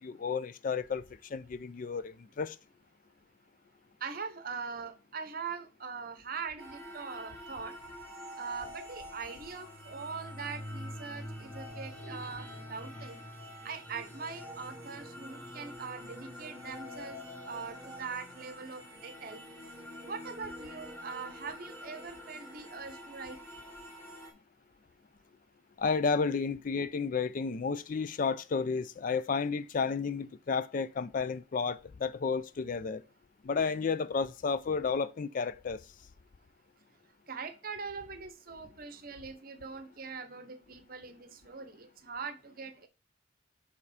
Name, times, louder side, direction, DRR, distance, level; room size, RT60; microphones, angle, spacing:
voice 1, 0.0-2.6 25.8-33.0 33.4-35.8, left 5 dB, 40° left, 0.3 m, -32 dB
voice 2, 4.0-7.8 8.3-13.2 13.6-19.4 20.0-23.4 37.3-42.9, right 5 dB, 45° right, 0.9 m, -42 dB
sound 1, 6.6-24.3, equal, 10° left, 1.6 m, -46 dB
7.1 x 3.6 x 4.9 m
head